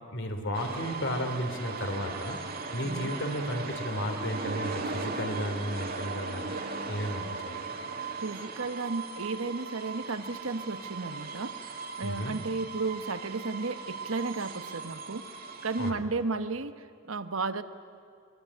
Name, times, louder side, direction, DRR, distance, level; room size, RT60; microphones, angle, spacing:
voice 1, 0.1-2.4 2.7-6.5 6.9-7.5 12.0-12.4 15.8-16.0, equal, 55° left, 5 dB, 2.9 m, -33 dB
sound 1, 0.5-15.9, right 3 dB, 45° right, 2.0 m, -38 dB
voice 2, 8.2-15.3 15.6-17.6, right 3 dB, 65° right, 11 dB, 1.1 m, -34 dB
23.5 x 21.0 x 9.8 m, 2.3 s
head